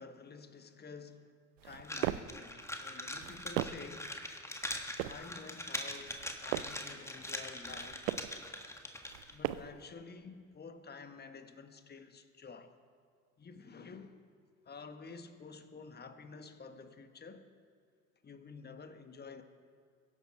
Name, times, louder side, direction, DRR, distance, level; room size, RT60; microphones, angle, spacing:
voice 1, 0.0-1.3 1.6-4.1 5.0-8.1 9.3-12.8 13.4-14.2 14.6-17.5 18.2-19.4, left 4 dB, 25° left, 1.4 m, -50 dB
sound 1, 1.6-2.4 3.1-4.0 4.6-5.3 6.0-6.9 7.6-8.4 9.1-9.9, right 14 dB, 65° right, 0.7 m, -39 dB
sound 2, 1.8-9.3, left 1 dB, 5° left, 1.7 m, -42 dB
22.5 x 11.5 x 4.4 m
figure-of-eight pair, 60°, 42 cm